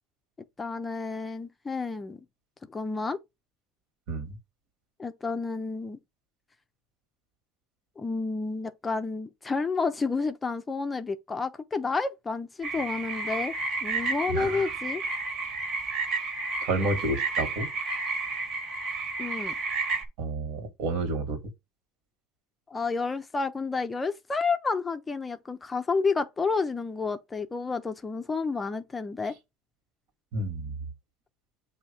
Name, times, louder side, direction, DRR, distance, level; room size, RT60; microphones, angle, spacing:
voice 1, 0.6-2.2 2.7-3.2 5.0-6.0 8.0-13.5 13.8-15.0 19.2-19.5 22.7-29.4, left 4 dB, 15° left, 0.5 m, -30 dB
sound 1, 12.6-20.1, right 3 dB, 40° right, 1.3 m, -31 dB
voice 2, 14.3-14.7 16.6-17.7 20.2-21.4 30.3-30.8, right 2 dB, 65° right, 1.7 m, -30 dB
7.6 x 2.7 x 5.1 m
cardioid pair, 150°, 0 cm